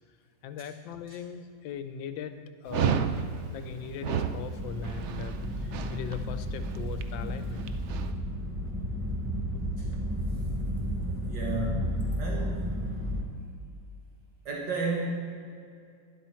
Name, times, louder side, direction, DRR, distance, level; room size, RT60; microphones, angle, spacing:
voice 1, 0.4-3.0 3.5-7.7 9.5-9.6, left 8 dB, 90° left, 10 dB, 1.5 m, -40 dB
Dog, 2.7-8.1, right 7 dB, 90° right, 0.6 m, -32 dB
sound 1, 4.6-13.2, equal, 15° right, 0.5 m, -32 dB
voice 2, 11.1-12.7 14.5-15.1, right 2 dB, 70° right, -3 dB, 2.2 m, -33 dB
11.5 x 11.0 x 4.5 m, 2.4 s
omnidirectional pair, 2.0 m